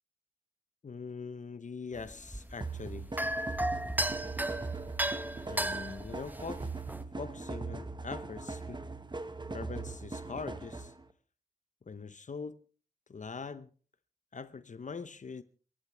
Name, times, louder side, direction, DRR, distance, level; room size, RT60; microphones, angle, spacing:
voice 1, 0.8-3.1 5.5-6.7 7.2-8.8 9.5-10.9 11.9-12.6 13.1-13.7 14.3-15.4, left 5 dB, 55° left, 0.9 m, -42 dB
sound 1, 1.9-7.0, right 1 dB, 10° right, 1.1 m, -35 dB
sound 2, 2.6-11.0, right 3 dB, 30° right, 1.5 m, -40 dB
27.5 x 14.5 x 3.4 m
wide cardioid pair, 75°, 15 cm